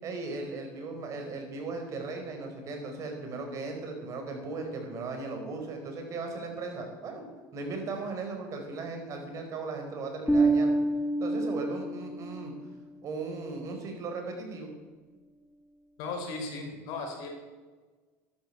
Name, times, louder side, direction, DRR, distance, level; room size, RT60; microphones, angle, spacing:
voice 1, 0.0-7.2 7.5-10.8 11.2-12.5 13.0-14.7, right 3 dB, 45° right, 4 dB, 4.8 m, -37 dB
Bass guitar, 10.3-12.7, right 2 dB, 5° left, 2.9 m, -27 dB
voice 2, 16.0-17.3, left 3 dB, 65° left, 3 dB, 4.8 m, -36 dB
12.5 x 12.0 x 6.9 m, 1.4 s
supercardioid pair, 95°, 7 cm